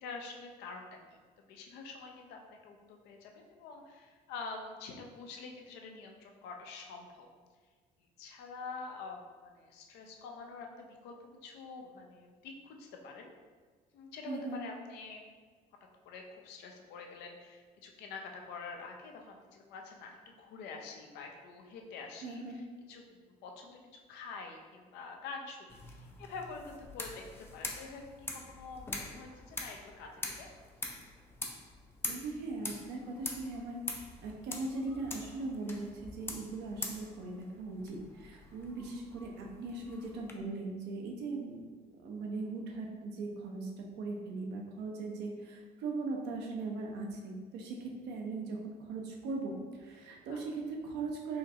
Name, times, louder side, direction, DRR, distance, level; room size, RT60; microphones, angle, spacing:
voice 1, 0.0-1.0 1.4-7.3 8.2-13.3 13.9-15.3 16.1-30.5 50.3-50.5, left 4 dB, 85° left, 2 dB, 0.5 m, -47 dB
voice 2, 14.3-14.6 22.2-22.6 32.0-41.7 42.0-51.4, right 3 dB, 85° right, 0 dB, 0.7 m, -39 dB
sound 1, 25.7-40.3, left 2 dB, 15° left, 0.4 m, -44 dB
4.3 x 2.4 x 2.8 m, 1.5 s
cardioid pair, 110°, 17 cm